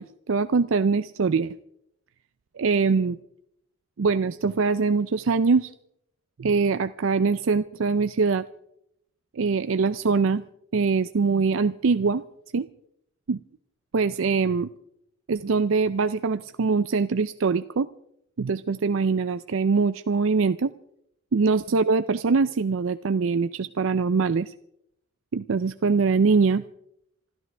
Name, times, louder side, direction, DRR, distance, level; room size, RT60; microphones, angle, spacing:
voice 1, 0.0-1.5 2.6-3.2 4.0-5.7 6.4-8.5 9.4-10.4 10.7-12.2 12.5-12.7 13.3-13.4 13.9-14.7 15.3-17.9 18.4-20.7 21.3-24.5 25.3-26.6, right 4 dB, 70° right, 12 dB, 0.5 m, -23 dB
27.5 x 13.5 x 3.4 m, 0.74 s
head